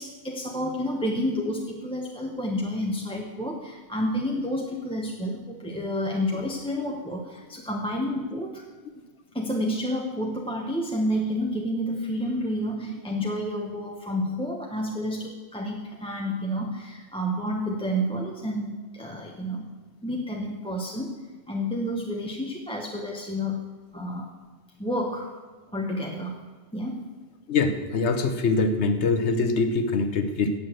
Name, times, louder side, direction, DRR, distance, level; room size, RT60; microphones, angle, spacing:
voice 1, 0.0-8.6 9.3-19.7 20.0-21.2 21.5-23.7 23.9-24.4 24.8-25.3 25.7-26.5 26.7-27.1, equal, 5° left, -1 dB, 0.9 m, -30 dB
voice 2, 27.5-30.5, left 3 dB, 85° left, 8 dB, 1.2 m, -24 dB
8.6 x 8.2 x 7.7 m, 1.3 s
omnidirectional pair, 1.1 m